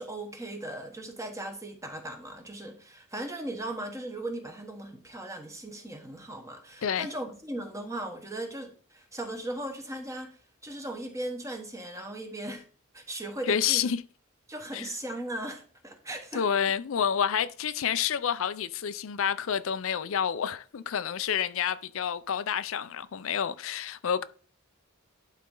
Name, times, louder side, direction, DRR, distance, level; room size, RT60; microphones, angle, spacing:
voice 1, 0.0-12.7 12.9-13.9 14.5-16.4, right 1 dB, 15° right, 1.1 m, -38 dB
voice 2, 13.5-14.0 14.7-14.9 16.3-24.2, left 8 dB, 70° left, 0.4 m, -29 dB
11.5 x 4.1 x 3.8 m
head